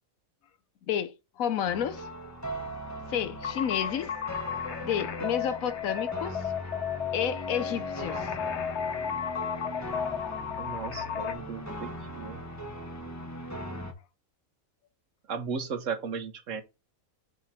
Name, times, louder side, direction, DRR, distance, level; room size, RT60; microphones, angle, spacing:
voice 1, 0.9-2.1 3.1-4.1 4.8-6.4 7.1-8.3, left 8 dB, 75° left, 1.2 m, -30 dB
sound 1, 1.7-13.9, equal, 10° left, 1.4 m, -39 dB
sound 2, 3.4-11.3, left 7 dB, 55° left, 1.1 m, -34 dB
voice 2, 10.6-11.9 12.2-12.4 15.3-16.6, right 5 dB, 65° right, 1.4 m, -35 dB
8.2 x 3.9 x 4.2 m
omnidirectional pair, 1.4 m